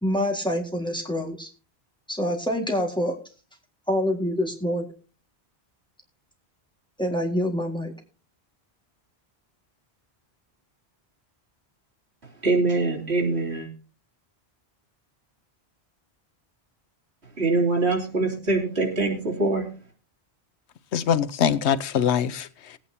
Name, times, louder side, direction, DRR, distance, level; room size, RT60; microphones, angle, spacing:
voice 1, 0.0-1.5 2.1-3.2 3.9-4.9 7.0-7.9, equal, 5° left, 1.9 m, -26 dB
voice 2, 12.4-13.7 17.4-19.7, right 3 dB, 80° right, 3.2 m, -23 dB
voice 3, 20.9-22.8, left 8 dB, 90° left, 1.0 m, -23 dB
19.5 x 8.8 x 2.8 m
omnidirectional pair, 1.1 m